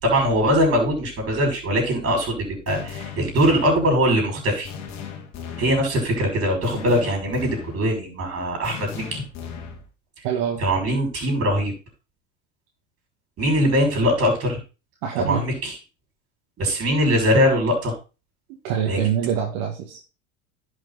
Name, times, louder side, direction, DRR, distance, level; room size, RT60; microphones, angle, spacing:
voice 1, 0.0-4.7 5.6-9.2 10.6-11.7 13.4-14.6 15.3-15.8 16.6-18.0 18.9-19.0, equal, 35° right, 2 dB, 6.2 m, -21 dB
sound 1, 2.7-3.9 4.6-5.8 6.6-7.8 8.6-9.8, left 7 dB, 45° left, 2.5 m, -36 dB
voice 2, 10.2-10.6 15.0-15.4 18.6-20.0, right 8 dB, 60° right, 0 dB, 2.2 m, -25 dB
10.5 x 6.2 x 4.1 m, 0.32 s
hypercardioid pair, 90°, 39 cm